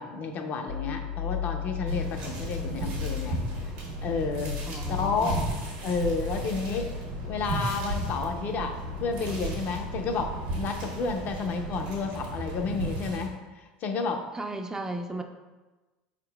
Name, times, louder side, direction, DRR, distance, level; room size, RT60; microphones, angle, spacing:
voice 1, 0.0-3.7 4.0-4.5 4.9-5.4 5.8-6.9 7.2-13.4 13.8-14.2, left 4 dB, 50° left, 4 dB, 0.5 m, -31 dB
sound 1, 0.7-11.6, left 9 dB, 75° left, 1.0 m, -38 dB
sound 2, 1.9-13.3, right 2 dB, 80° right, 1.1 m, -35 dB
voice 2, 4.7-5.5 14.3-15.2, right 1 dB, 15° right, 5 dB, 0.3 m, -35 dB
4.4 x 3.6 x 2.3 m, 1.2 s
hypercardioid pair, 85°, 4 cm